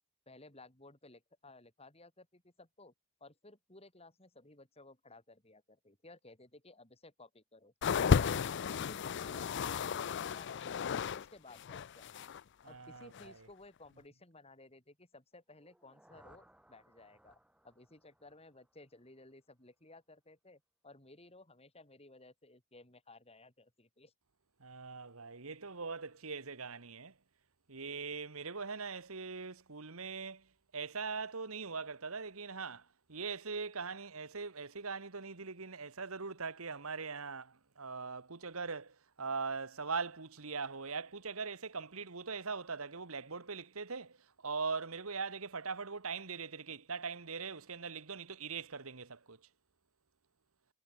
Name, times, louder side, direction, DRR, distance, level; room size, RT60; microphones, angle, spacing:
voice 1, 0.3-2.9 3.2-7.7 8.2-10.8 11.1-12.3 12.7-17.4 17.6-24.1, left 2 dB, 30° left, 4.7 m, -57 dB
sound 1, 7.8-11.3 11.5-12.4 13.1-13.3, left 6 dB, 55° left, 0.4 m, -33 dB
voice 2, 12.6-13.3 24.6-27.1 27.7-30.5 30.7-49.4, right 5 dB, 80° right, 1.7 m, -41 dB
sound 2, 15.5-19.5, right 1 dB, 5° right, 2.8 m, -66 dB
head